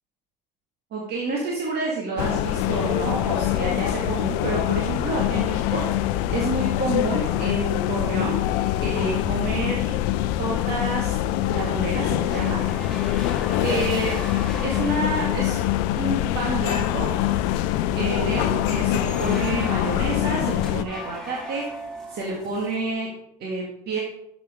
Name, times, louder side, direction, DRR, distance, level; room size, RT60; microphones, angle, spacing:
voice 1, 0.9-5.8 6.3-8.4 8.8-9.9 10.4-11.2 11.5-12.6 13.6-14.1 14.6-15.6 15.9-17.1 17.9-21.6 22.1-23.1 23.4-24.0, right 2 dB, 50° right, -3 dB, 2.0 m, -28 dB
sound 1, 2.2-20.8, left 13 dB, 65° left, 0.6 m, -24 dB
sound 2, 12.3-22.9, left 1 dB, ahead, 2.4 m, -40 dB
12.0 x 6.2 x 3.7 m, 0.80 s
hypercardioid pair, 65°, 21 cm